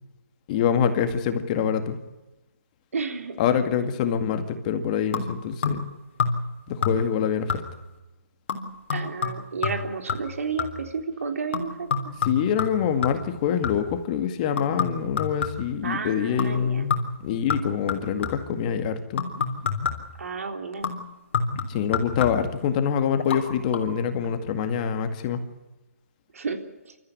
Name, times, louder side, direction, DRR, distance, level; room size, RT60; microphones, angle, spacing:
voice 1, 0.5-2.0 3.4-5.9 6.7-7.6 12.2-19.3 21.7-25.4, left 8 dB, 30° left, 8 dB, 2.1 m, -25 dB
voice 2, 2.9-3.4 8.9-12.1 15.8-16.9 20.2-20.9 26.3-26.6 26.9-27.0, right 5 dB, 70° right, 6 dB, 3.6 m, -32 dB
sound 1, 5.1-5.9 6.2-6.6 6.8-7.2 7.5-7.9 8.5-10.9 11.5-14.0 14.6-15.8 16.4-16.6 16.9-18.6 19.2-20.2 20.8-22.6 23.2-23.4 23.7-23.8, left 5 dB, 50° left, 3.6 m, -29 dB
25.5 x 14.0 x 9.7 m, 1.0 s
hypercardioid pair, 150°, 8 cm